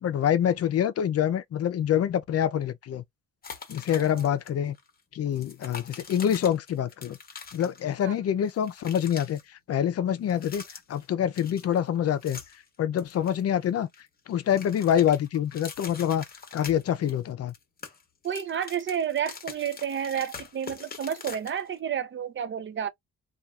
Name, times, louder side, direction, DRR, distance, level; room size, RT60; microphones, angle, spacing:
voice 1, 0.0-3.0 3.7-4.8 5.1-7.2 7.5-10.6 10.9-12.4 12.8-13.9 14.3-16.2 16.5-17.5, left 9 dB, 55° left, 0.5 m, -26 dB
sound 1, 3.4-4.5 4.7-4.9 5.3-8.1 8.4-9.4 10.2-11.1 11.3-12.7 13.0-14.0 14.3-17.2 17.5-21.8, left 5 dB, 30° left, 0.9 m, -44 dB
voice 2, 3.9-4.3 8.0-8.1 18.2-22.9, right 8 dB, 40° right, 0.5 m, -31 dB
2.8 x 2.4 x 2.3 m
cardioid pair, 90°, 30 cm